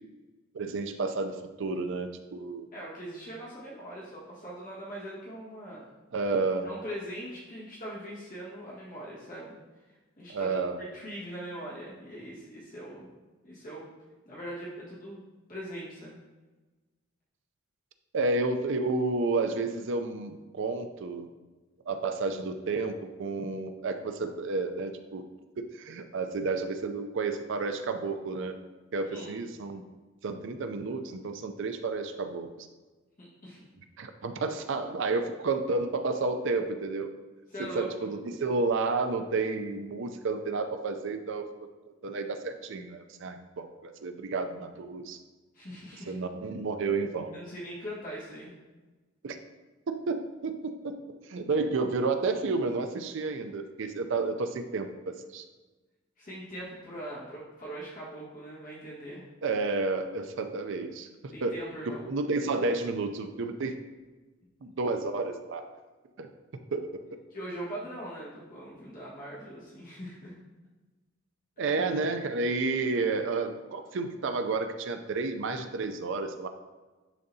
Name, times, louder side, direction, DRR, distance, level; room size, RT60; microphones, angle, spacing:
voice 1, 0.5-2.7 6.1-6.7 10.3-10.8 18.1-21.3 21.9-22.9 23.2-25.2 25.6-28.6 28.9-29.8 30.2-32.7 34.0-37.1 37.6-41.5 42.0-45.2 46.1-47.4 49.2-49.4 49.9-51.0 51.3-55.4 59.4-61.1 61.4-61.5 62.1-63.8 64.6-65.6 66.2-66.3 66.7-67.0 71.6-76.5, right 3 dB, 65° right, 7 dB, 0.5 m, -31 dB
voice 2, 2.7-5.8 6.6-9.5 10.2-13.1 13.4-13.8 14.2-15.2 15.5-16.2 29.1-29.3 33.2-33.6 37.5-38.1 45.5-46.1 47.3-48.5 56.2-59.3 61.3-62.0 67.3-70.3 71.6-71.7, right 1 dB, 40° left, -7 dB, 1.6 m, -41 dB
10.5 x 3.8 x 2.7 m, 1.2 s
head